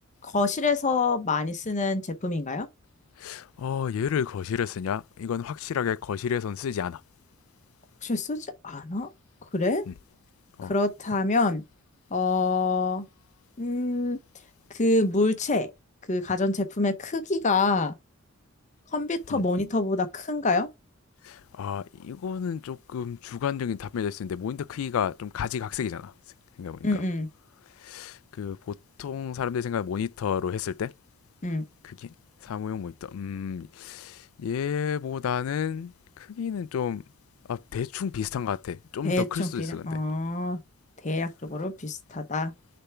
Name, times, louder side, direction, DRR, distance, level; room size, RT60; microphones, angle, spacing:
voice 1, 0.2-2.7 8.0-8.4 8.6-9.1 9.5-9.8 10.6-11.6 12.1-13.1 13.6-14.2 14.7-15.7 16.1-17.9 18.9-20.7 26.8-27.3 31.4-31.7 39.0-40.6 41.0-42.5, left 3 dB, 35° left, 0.7 m, -26 dB
voice 2, 3.2-7.0 9.9-10.0 10.6-10.7 19.3-19.5 21.2-26.1 26.6-26.9 27.8-30.9 31.8-32.1 32.4-37.0 37.5-40.0, left 7 dB, 90° left, 0.3 m, -31 dB
6.7 x 3.4 x 4.4 m
head